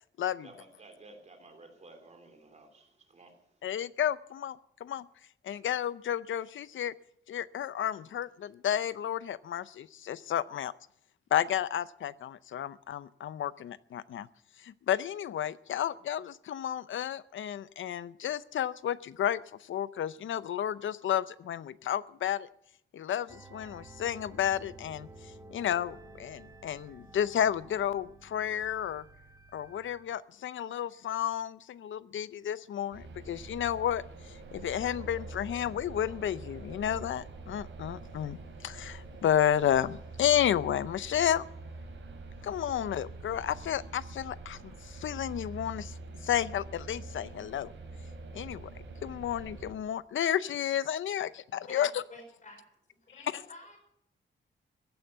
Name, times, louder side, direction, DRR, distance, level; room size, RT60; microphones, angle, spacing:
voice 1, 0.4-3.7, right 2 dB, 35° right, 4 dB, 3.0 m, -54 dB
voice 2, 3.6-5.1 5.4-6.9 7.3-10.7 11.3-14.3 14.6-22.5 22.9-29.0 29.5-41.4 42.4-45.9 46.2-47.7 48.3-48.7 49.0-51.9 53.3-53.4, left 10 dB, 75° left, 17 dB, 0.6 m, -32 dB
sound 1, 23.3-30.0, right 2 dB, 15° right, 1.2 m, -52 dB
sound 2, 32.9-49.7, right 3 dB, 80° right, 4.6 m, -45 dB
voice 3, 51.7-52.6 52.9-53.8, left 2 dB, 40° left, 4 dB, 5.2 m, -50 dB
15.0 x 9.1 x 8.5 m, 0.74 s
wide cardioid pair, 140°, 20 cm